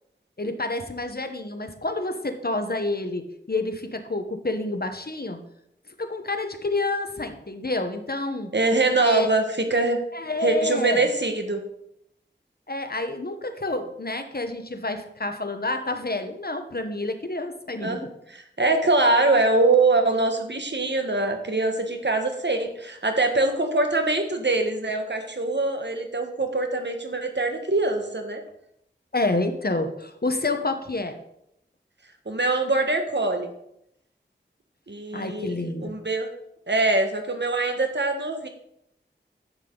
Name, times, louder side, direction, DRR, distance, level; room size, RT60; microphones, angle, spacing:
voice 1, 0.4-5.4 6.0-8.5 9.0-9.3 10.1-11.1 12.7-18.1 29.1-31.2 35.1-35.9, left 2 dB, 55° left, 7 dB, 1.2 m, -28 dB
voice 2, 8.5-10.0 10.4-11.6 17.8-28.4 32.2-33.5 34.9-36.3 36.7-38.5, right 2 dB, 65° right, 5 dB, 1.5 m, -23 dB
10.5 x 8.0 x 3.9 m, 0.77 s
wide cardioid pair, 40°, 19 cm